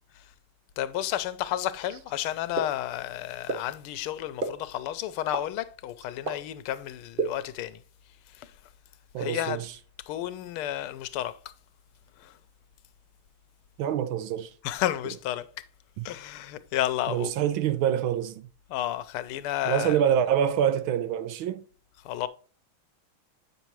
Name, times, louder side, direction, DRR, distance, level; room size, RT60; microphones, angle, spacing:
voice 1, 0.8-7.8 8.3-8.6 9.2-9.6 10.0-11.4 12.2-12.4 14.6-15.7 16.0-17.3 18.7-20.0 22.0-22.3, left 12 dB, 90° left, 1.6 m, -32 dB
sound 1, 2.6-2.7 3.5-3.6 4.4-4.5 5.3-5.4 6.3-6.4 7.2-7.3, right 3 dB, 40° right, 0.7 m, -27 dB
voice 2, 9.1-9.7 13.8-14.5 16.0-16.1 17.1-18.5 19.7-21.6, right 9 dB, 80° right, 1.4 m, -26 dB
9.1 x 5.8 x 3.0 m
omnidirectional pair, 2.3 m